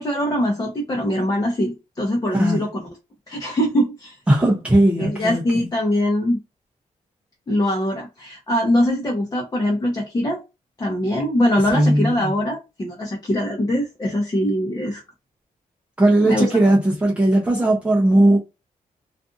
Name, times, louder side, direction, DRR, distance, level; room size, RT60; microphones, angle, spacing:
voice 1, 0.0-2.9 3.3-4.1 5.0-6.4 7.5-10.4 10.8-15.0 16.2-16.5, left 1 dB, 25° left, 0.8 m, -22 dB
voice 2, 4.3-5.7 11.7-12.3 16.0-18.4, right 1 dB, 10° right, 0.7 m, -18 dB
2.5 x 2.4 x 2.4 m
cardioid pair, 110°, 14 cm